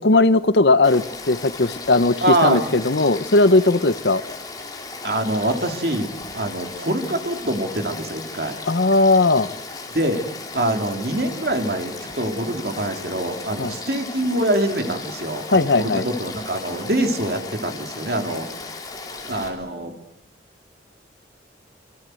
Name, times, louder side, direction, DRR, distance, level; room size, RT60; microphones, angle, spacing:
voice 1, 0.0-2.2 2.4-4.2 8.7-9.5 13.6-13.7 15.5-16.0, left 2 dB, 70° left, 14 dB, 1.0 m, -17 dB
Frog / Stream, 0.8-19.5, left 3 dB, 20° left, 3.9 m, -36 dB
voice 2, 2.2-2.6 5.0-8.6 9.9-10.2 10.5-18.5 19.2-20.0, right 1 dB, 60° right, 5 dB, 3.0 m, -24 dB
26.0 x 24.0 x 7.8 m, 0.89 s
head